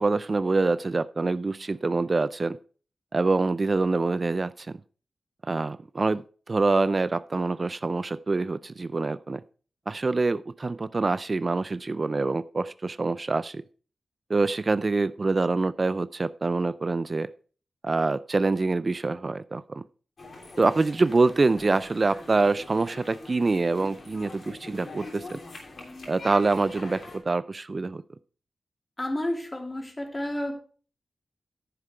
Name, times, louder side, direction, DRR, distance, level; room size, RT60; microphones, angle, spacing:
voice 1, 0.0-2.6 3.1-4.8 5.4-9.4 9.9-13.6 14.3-17.3 17.8-19.8 20.6-25.4 26.1-28.0, right 3 dB, 45° right, 15 dB, 0.4 m, -25 dB
sound 1, 20.2-27.2, left 2 dB, 65° left, 3.0 m, -43 dB
voice 2, 29.0-30.5, left 1 dB, 25° left, 2 dB, 2.9 m, -30 dB
10.0 x 7.4 x 4.4 m, 0.41 s
cardioid pair, 55°, 0 cm